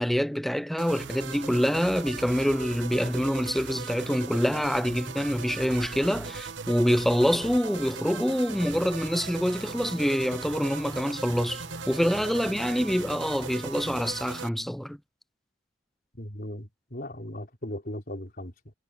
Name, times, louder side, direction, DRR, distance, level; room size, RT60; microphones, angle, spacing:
voice 1, 0.0-15.0, equal, ahead, 0.3 m, -26 dB
sound 1, 0.8-14.5, right 5 dB, 85° right, 1.0 m, -39 dB
sound 2, 8.5-14.4, equal, 25° left, 4.4 m, -46 dB
voice 2, 16.1-18.7, left 1 dB, 50° left, 4.1 m, -38 dB
head